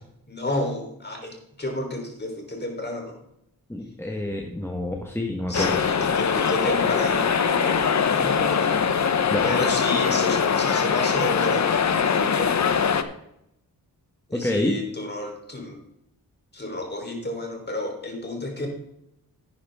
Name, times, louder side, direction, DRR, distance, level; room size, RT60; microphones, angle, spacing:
voice 1, 0.3-3.2 5.5-7.4 7.6-8.9 9.4-11.7 12.1-12.6 14.3-15.8 16.5-18.7, left 1 dB, 30° left, 2 dB, 3.5 m, -31 dB
voice 2, 3.7-5.8 9.3-9.5 14.3-14.8, left 1 dB, 5° left, 1 dB, 1.2 m, -27 dB
sound 1, 5.5-13.0, left 6 dB, 50° left, 0.9 m, -22 dB
11.0 x 9.7 x 3.5 m, 0.80 s
cardioid pair, 85°, 36 cm